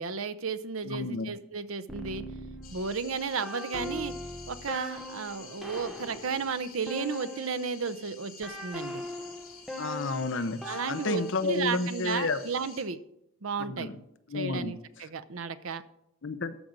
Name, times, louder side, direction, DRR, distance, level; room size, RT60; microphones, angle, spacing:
voice 1, 0.0-2.2 2.7-4.2 4.5-9.0 10.6-13.0 13.4-13.9 14.3-15.8, right 5 dB, 70° right, 13 dB, 0.7 m, -33 dB
voice 2, 0.8-1.3 9.8-12.4 13.7-13.9 14.3-14.7 16.2-16.6, left 3 dB, 55° left, 11 dB, 0.7 m, -31 dB
sound 1, 1.9-7.8 8.4-11.6, left 1 dB, ahead, 1.1 m, -41 dB
sound 2, 2.6-12.8, left 6 dB, 80° left, 2.8 m, -50 dB
13.5 x 5.2 x 7.4 m, 0.80 s
head